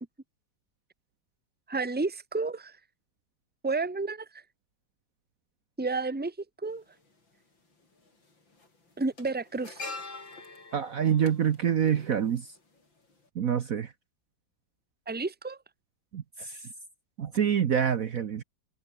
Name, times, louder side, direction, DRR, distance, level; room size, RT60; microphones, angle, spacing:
voice 1, 1.7-2.8 3.6-4.4 5.8-6.3 6.6-6.8 9.0-9.9 15.1-15.6, right 3 dB, 5° right, 1.3 m, -31 dB
sound 1, 6.7-6.8 8.0-8.2 8.5-12.8 13.1-13.3, left 3 dB, 85° left, 6.4 m, -44 dB
voice 2, 10.7-12.4 13.4-13.9 16.1-16.6 17.2-18.4, right 8 dB, 55° right, 1.3 m, -26 dB
omnidirectional pair, 2.0 m